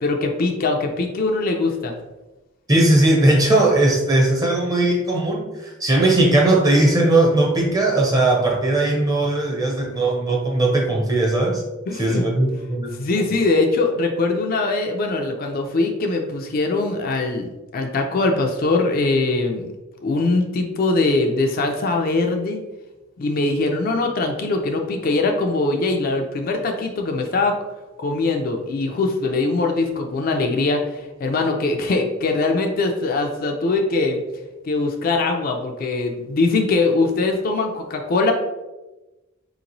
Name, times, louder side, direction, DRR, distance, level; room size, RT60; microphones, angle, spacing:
voice 1, 0.0-1.9 11.9-12.3 13.0-19.7 20.0-22.6 23.2-27.6 28.0-34.2 34.6-38.3, left 3 dB, 45° left, 3 dB, 0.4 m, -22 dB
voice 2, 2.7-11.6 12.0-13.0, right 2 dB, 20° right, -1 dB, 0.7 m, -18 dB
4.2 x 2.9 x 2.6 m, 1.0 s
head